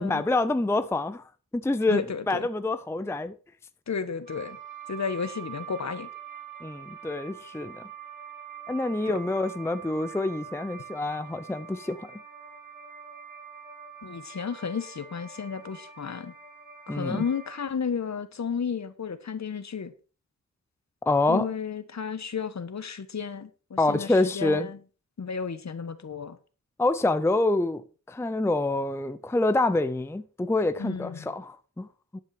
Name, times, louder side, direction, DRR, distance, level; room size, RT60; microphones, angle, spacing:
voice 1, 0.0-3.3 6.6-7.9 8.7-12.1 16.9-17.2 21.1-21.5 23.8-24.7 26.8-31.9 32.1-32.2, left 2 dB, 10° left, 0.5 m, -27 dB
voice 2, 1.9-2.5 3.9-4.6 4.9-6.1 9.1-9.2 14.0-16.3 16.9-19.9 21.3-24.8 25.2-26.4 30.8-31.2, left 6 dB, 55° left, 1.3 m, -33 dB
sound 1, 4.3-17.7, right 8 dB, 20° right, 3.4 m, -44 dB
10.5 x 8.8 x 4.9 m
wide cardioid pair, 145°, 33 cm